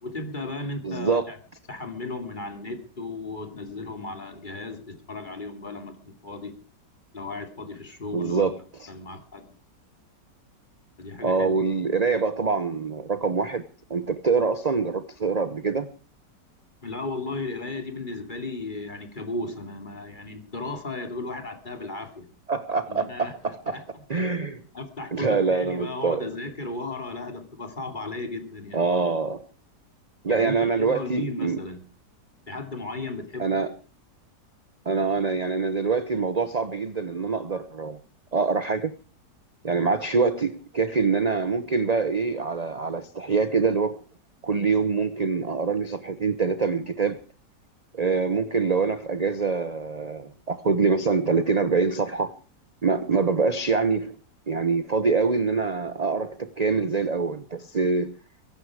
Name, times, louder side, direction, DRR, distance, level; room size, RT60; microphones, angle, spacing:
voice 1, 0.0-1.4 1.7-6.6 7.1-8.6 8.9-9.5 11.0-11.5 16.8-22.3 22.9-23.3 23.7-24.2 24.7-28.8 30.3-31.8 32.5-33.6, left 2 dB, 25° left, 2.8 m, -35 dB
voice 2, 0.8-1.3 8.1-8.5 8.8-8.9 11.2-13.6 13.9-15.9 22.5-23.6 24.1-24.6 25.1-26.3 28.7-29.4 30.2-31.6 33.4-33.7 34.8-38.0 38.3-38.9 39.6-43.9 44.4-47.2 47.9-52.3 52.8-54.1 54.5-58.1, right 4 dB, 30° right, 0.7 m, -25 dB
22.5 x 11.0 x 4.9 m
omnidirectional pair, 1.8 m